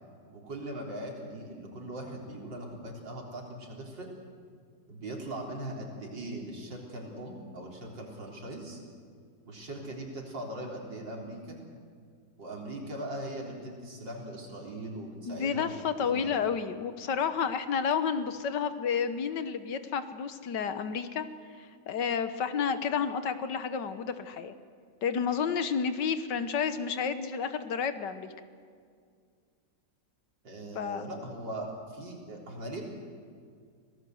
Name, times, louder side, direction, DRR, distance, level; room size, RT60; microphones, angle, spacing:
voice 1, 0.3-4.1 4.9-8.8 9.4-11.6 12.4-16.5 30.4-32.8, right 1 dB, 75° right, -1 dB, 4.5 m, -40 dB
voice 2, 15.3-21.3 21.6-24.5 25.0-28.3 30.7-31.0, left 6 dB, 70° left, 11 dB, 1.7 m, -31 dB
25.5 x 18.5 x 7.8 m, 2.1 s
omnidirectional pair, 2.0 m